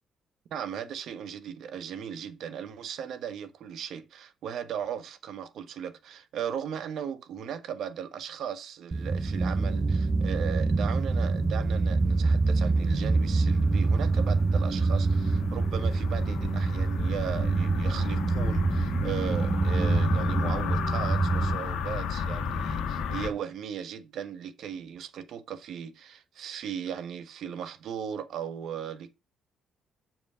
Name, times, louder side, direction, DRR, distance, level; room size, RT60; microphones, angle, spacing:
voice 1, 0.5-29.1, right 8 dB, 75° right, 1.2 m, -37 dB
sound 1, 8.9-21.6, right 3 dB, 35° right, 0.5 m, -26 dB
sound 2, 9.1-23.3, left 5 dB, 85° left, 1.6 m, -34 dB
7.2 x 6.1 x 5.6 m
cardioid pair, 90°, 0 cm